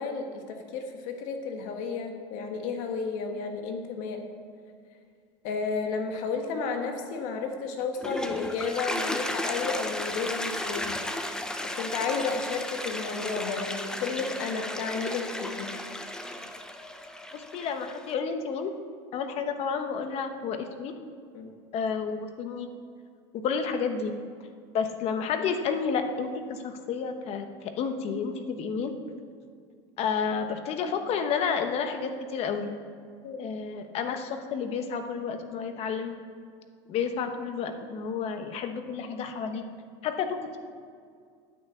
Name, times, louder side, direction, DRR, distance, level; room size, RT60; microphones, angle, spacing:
voice 1, 0.0-4.2 5.4-11.0 11.7-15.7 21.3-21.5 33.2-33.4, left 5 dB, 65° left, 4 dB, 1.5 m, -32 dB
Toilet flush, 7.8-18.1, left 1 dB, 5° left, 0.6 m, -34 dB
voice 2, 17.3-18.7 19.1-20.9 21.7-22.7 23.4-24.1 24.7-28.9 30.0-32.7 33.4-36.1 36.9-39.6 40.0-40.6, left 6 dB, 45° left, 7 dB, 1.0 m, -30 dB
9.4 x 5.8 x 8.2 m, 2.2 s
supercardioid pair, 135°, 14 cm